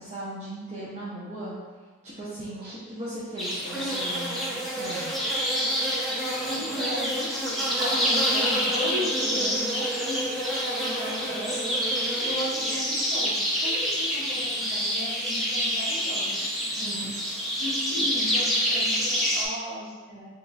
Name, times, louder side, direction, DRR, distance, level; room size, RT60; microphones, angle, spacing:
voice 1, 0.0-1.5 2.0-5.1 16.8-17.1, right 1 dB, 35° right, -10 dB, 0.8 m, -37 dB
sound 1, 3.4-19.4, equal, ahead, 0.6 m, -27 dB
voice 2, 6.5-11.8 12.2-17.1 17.6-20.3, left 1 dB, 50° right, -8 dB, 1.5 m, -36 dB
3.5 x 3.1 x 4.0 m, 1.4 s
head